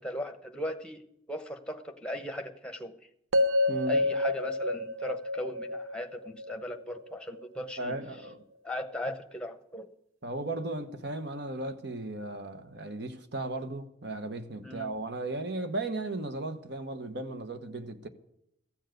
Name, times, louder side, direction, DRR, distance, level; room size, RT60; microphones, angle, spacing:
voice 1, 0.0-2.9 3.9-8.0 8.6-9.9 14.6-14.9, equal, 5° left, 1.0 m, -38 dB
sound 1, 3.3-7.4, left 1 dB, 90° right, 0.7 m, -29 dB
voice 2, 3.7-4.0 7.8-8.4 10.2-18.1, right 2 dB, 55° right, 1.1 m, -36 dB
15.0 x 7.4 x 9.1 m
head